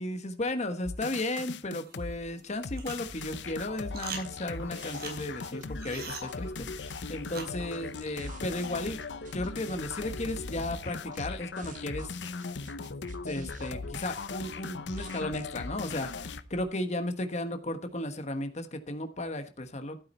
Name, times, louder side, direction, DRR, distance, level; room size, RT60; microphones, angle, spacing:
voice 1, 0.0-9.0 9.3-12.2 13.2-20.0, left 1 dB, 40° left, 7 dB, 1.3 m, -35 dB
sound 1, 0.8-2.1 2.6-16.4, left 4 dB, 85° left, 0.7 m, -39 dB
sound 2, 1.8-8.3, right 5 dB, 65° right, 4.6 m, -46 dB
sound 3, 3.0-16.6, right 2 dB, 45° right, 0.9 m, -52 dB
12.0 x 8.8 x 4.3 m, 0.33 s
head